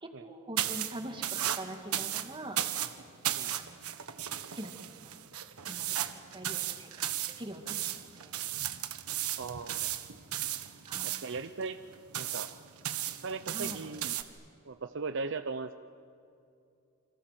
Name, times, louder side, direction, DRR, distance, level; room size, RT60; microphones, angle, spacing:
voice 1, 0.0-2.6 3.5-3.8 4.5-4.7 5.0-5.1 5.7-6.9 7.4-7.7 8.1-8.3 10.8-11.2 13.5-13.8, right 1 dB, 20° right, 4 dB, 2.5 m, -43 dB
sound 1, 0.6-14.2, right 12 dB, 80° right, 1.4 m, -35 dB
voice 2, 9.4-9.9 11.0-11.8 12.1-12.5 13.2-14.2 14.6-15.8, right 4 dB, 55° right, 10 dB, 0.7 m, -38 dB
29.0 x 26.5 x 7.8 m, 2.6 s
head